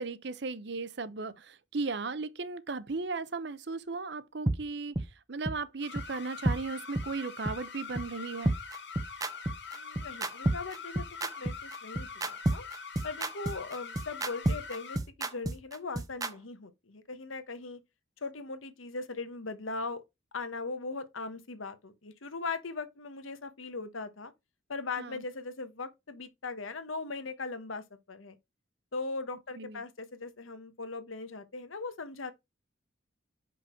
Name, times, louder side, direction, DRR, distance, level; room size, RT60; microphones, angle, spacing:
voice 1, 0.0-8.5 25.0-25.2 29.6-29.8, right 4 dB, 60° right, 0.7 m, -36 dB
sound 1, 4.5-4.6 4.9-5.1 5.4-5.5 6.0-6.1 6.4-6.6 6.9-7.1 7.4-7.5 8.0-8.1 8.4-16.3, right 1 dB, 20° right, 0.6 m, -30 dB
sound 2, 5.8-15.0, left 5 dB, 60° left, 1.3 m, -44 dB
voice 2, 9.7-11.1 11.4-12.6 13.0-17.8 18.2-20.0 20.3-24.3 24.7-28.4 28.9-32.3, left 3 dB, 85° left, 1.1 m, -39 dB
6.0 x 5.3 x 4.3 m
head